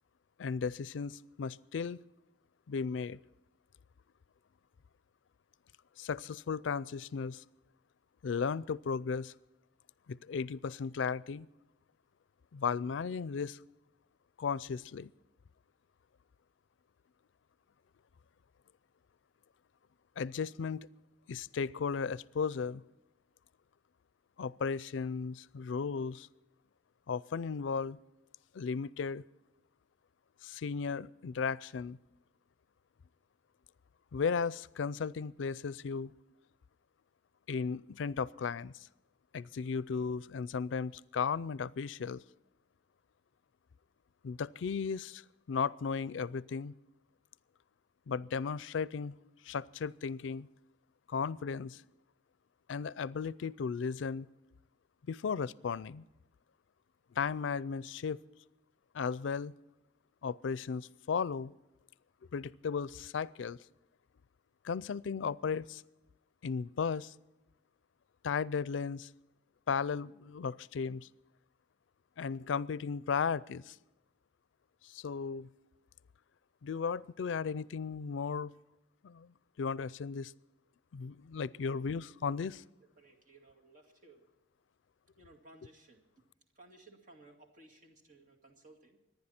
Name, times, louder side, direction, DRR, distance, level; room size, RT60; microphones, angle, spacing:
voice 1, 0.4-2.0 2.7-3.2 6.0-7.4 8.2-9.3 10.1-11.5 12.5-13.6 14.4-15.1 20.2-20.9 21.3-22.8 24.4-26.3 27.1-28.0 28.5-29.2 30.4-32.0 34.1-36.1 37.5-38.9 39.3-42.2 44.2-45.2 45.5-46.7 48.1-49.2 49.4-50.5 51.1-51.8 52.7-54.3 55.1-56.0 57.1-58.2 58.9-59.5 60.2-61.5 62.3-63.6 64.6-65.8 66.4-67.1 68.2-69.1 69.7-71.1 72.2-73.8 74.8-75.5 76.6-78.5 79.0-79.3 79.6-80.3 80.9-82.6, left 5 dB, 90° left, 21 dB, 0.4 m, -35 dB
voice 2, 83.0-84.3 85.2-86.1 86.6-89.0, right 2 dB, 45° right, 1 dB, 2.2 m, -59 dB
25.0 x 10.5 x 4.3 m, 0.98 s
head